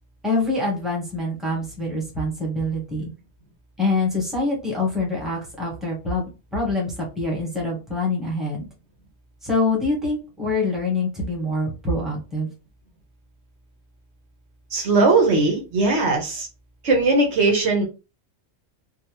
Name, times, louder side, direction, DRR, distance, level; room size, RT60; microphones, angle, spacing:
voice 1, 0.2-3.1 3.8-8.7 9.4-12.5, left 2 dB, ahead, -3 dB, 1.1 m, -25 dB
voice 2, 14.7-16.5 16.8-17.8, right 3 dB, 70° right, 2 dB, 1.2 m, -19 dB
3.6 x 2.3 x 3.0 m, 0.30 s
omnidirectional pair, 1.2 m